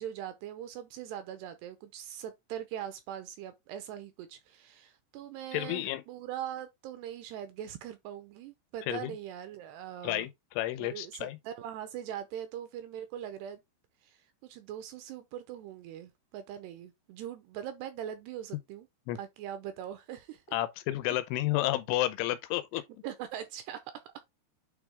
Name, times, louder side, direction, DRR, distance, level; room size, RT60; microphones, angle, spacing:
voice 1, 0.0-10.3 10.8-13.6 14.0-18.9 19.1-20.4 23.0-23.8, right 10 dB, 80° right, 2.5 m, -41 dB
voice 2, 5.5-6.0 8.9-9.2 10.0-10.3 10.6-11.4 19.1-19.2 20.5-22.8, left 15 dB, 85° left, 3.3 m, -31 dB
9.1 x 3.7 x 3.5 m
omnidirectional pair, 5.4 m